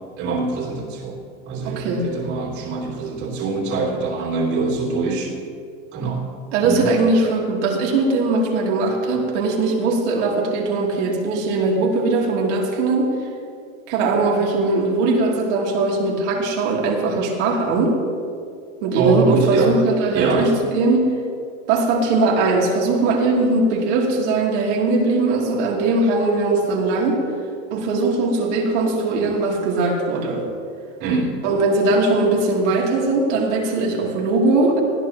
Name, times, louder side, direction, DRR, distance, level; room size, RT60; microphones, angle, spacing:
voice 1, 0.2-1.2 1.5-5.3 5.9-6.2 6.6-6.9 19.0-19.7 20.1-20.5 31.0-31.4, right 4 dB, 50° right, -2 dB, 3.4 m, -24 dB
voice 2, 1.6-2.1 6.5-13.1 13.9-18.0 18.8-21.1 21.7-27.2 27.7-30.5 31.4-34.8, right 3 dB, 65° right, -2 dB, 3.1 m, -20 dB
20.0 x 14.5 x 3.0 m, 2.3 s
supercardioid pair, 150°, 38 cm